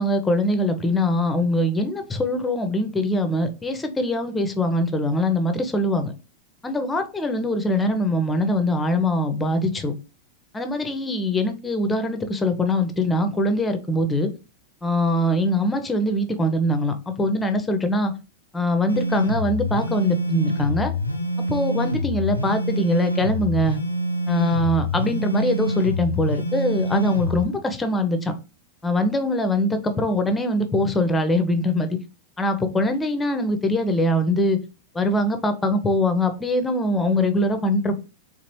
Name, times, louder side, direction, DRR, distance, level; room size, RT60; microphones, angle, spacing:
voice 1, 0.0-6.1 6.6-9.9 10.5-14.3 14.8-18.1 18.5-20.9 21.5-23.8 24.3-28.3 28.8-32.0 32.4-34.6 34.9-38.0, left 1 dB, 10° left, 0.6 m, -22 dB
sound 1, 18.9-27.4, left 1 dB, 85° left, 0.4 m, -26 dB
4.1 x 2.5 x 3.0 m
figure-of-eight pair, 90°, 0 cm